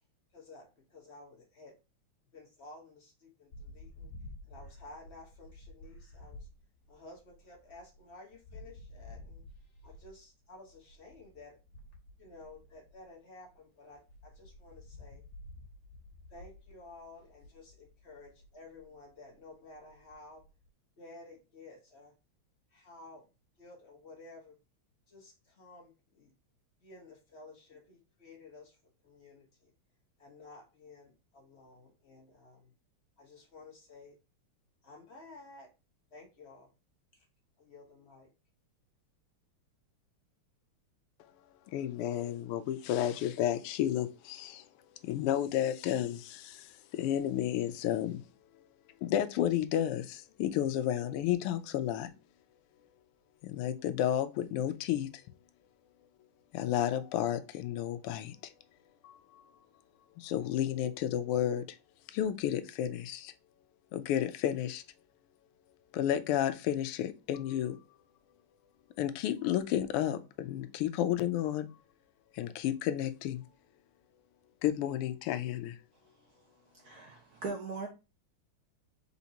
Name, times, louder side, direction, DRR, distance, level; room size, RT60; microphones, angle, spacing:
voice 1, 0.3-1.8 2.3-4.1 4.4-6.5 6.9-9.4 9.8-11.6 12.2-15.2 16.3-20.4 21.0-22.1 22.7-23.3 23.6-24.6 25.1-26.3 26.8-29.7 30.2-32.7 33.2-34.2 34.8-35.7 36.1-36.7 37.1-37.2 37.6-38.3, left 2 dB, 40° left, 1.1 m, -53 dB
sound 1, 3.5-13.5 13.9-20.7, left 1 dB, 55° left, 1.7 m, -52 dB
voice 2, 41.7-48.2 48.5-48.7 49.0-52.1 53.4-55.4 56.2-56.3 56.5-58.5 59.0-59.7 60.0-61.8 62.1-63.3 63.9-64.8 65.9-67.8 69.0-71.8 72.3-73.5 74.6-75.8, left 11 dB, 90° left, 1.5 m, -32 dB
voice 3, 76.7-77.9, right 4 dB, 60° right, 1.1 m, -39 dB
4.3 x 4.1 x 2.8 m
omnidirectional pair, 2.4 m